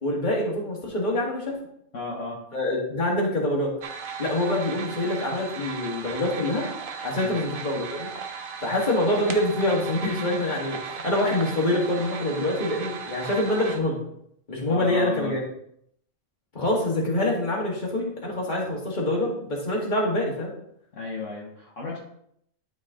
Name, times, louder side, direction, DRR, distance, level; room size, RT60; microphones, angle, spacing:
voice 1, 0.0-1.6 2.5-3.7 4.2-6.7 7.0-8.1 8.6-14.0 14.5-15.4 16.5-20.5, left 1 dB, 35° left, -3 dB, 2.1 m, -25 dB
voice 2, 1.9-2.4 7.1-7.4 14.7-15.4 20.9-22.0, left 3 dB, 60° left, -3 dB, 1.6 m, -33 dB
sound 1, 3.8-13.8, right 6 dB, 70° right, 1.2 m, -36 dB
12.0 x 4.1 x 3.7 m, 0.73 s
omnidirectional pair, 1.5 m